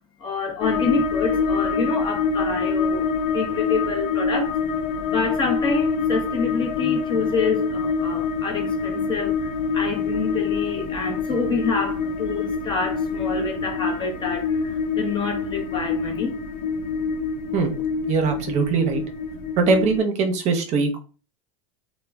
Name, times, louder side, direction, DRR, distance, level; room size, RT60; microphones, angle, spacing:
voice 1, 0.2-4.6 5.1-16.3, left 4 dB, 30° left, 0.7 m, -27 dB
sound 1, 0.6-20.0, left 5 dB, 55° left, 0.4 m, -26 dB
voice 2, 18.1-19.0 19.6-21.0, right 4 dB, 45° right, 0.7 m, -21 dB
3.0 x 2.1 x 2.2 m
hypercardioid pair, 105°, 17 cm